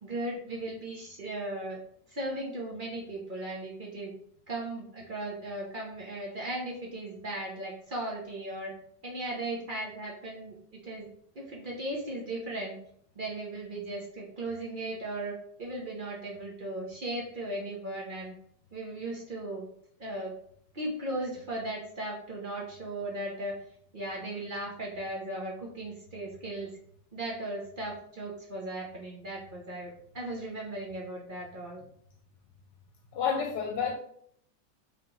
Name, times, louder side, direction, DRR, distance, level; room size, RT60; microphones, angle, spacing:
voice 1, 0.0-1.8 2.1-4.1 4.5-8.7 9.0-10.5 10.8-11.1 11.3-12.8 13.2-18.3 18.7-19.7 20.0-20.3 20.7-23.6 23.9-26.7 27.1-31.8, right 1 dB, 50° right, -2 dB, 0.6 m, -37 dB
voice 2, 33.1-33.9, left 6 dB, 80° left, 1 dB, 1.2 m, -29 dB
3.5 x 2.9 x 3.8 m, 0.66 s
omnidirectional pair, 1.9 m